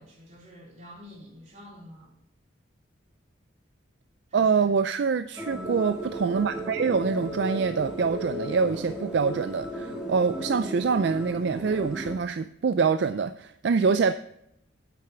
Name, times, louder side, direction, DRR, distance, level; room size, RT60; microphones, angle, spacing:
voice 1, 0.0-2.1 4.3-4.7, equal, 35° right, 3.6 m, -48 dB
voice 2, 4.3-14.1, right 5 dB, 60° right, 0.3 m, -25 dB
sound 1, 5.4-12.2, right 1 dB, 5° right, 1.6 m, -35 dB
9.4 x 8.2 x 3.4 m
head